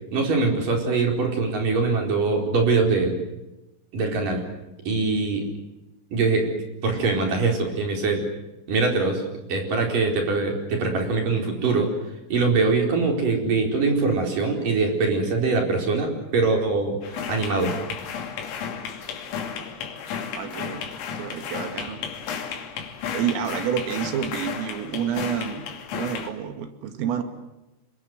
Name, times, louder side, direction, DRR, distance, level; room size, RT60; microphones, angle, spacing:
voice 1, 0.1-3.2 3.9-4.4 4.9-5.5 6.1-6.5 6.8-8.2 8.7-9.2 9.5-11.9 12.3-17.7, right 3 dB, 45° right, 2 dB, 5.7 m, -23 dB
sound 1, 17.0-26.3, left 7 dB, 85° left, 5.4 m, -33 dB
voice 2, 20.3-20.9 21.2-22.0 23.1-25.7 25.9-27.2, right 8 dB, 85° right, 8 dB, 4.6 m, -29 dB
27.5 x 23.0 x 7.9 m, 0.97 s
omnidirectional pair, 5.8 m